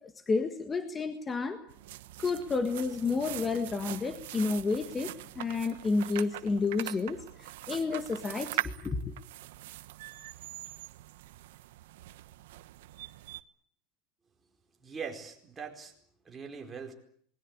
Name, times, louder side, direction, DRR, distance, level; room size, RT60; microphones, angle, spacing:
voice 1, 0.0-1.6 2.2-9.1, left 4 dB, 15° left, 8 dB, 1.7 m, -31 dB
sound 1, 1.7-13.4, right 16 dB, 80° right, 1.2 m, -42 dB
voice 2, 14.8-15.9 16.2-16.9, right 6 dB, 15° right, 2 dB, 4.6 m, -41 dB
27.0 x 21.5 x 8.7 m, 0.62 s
supercardioid pair, 160°, 0 cm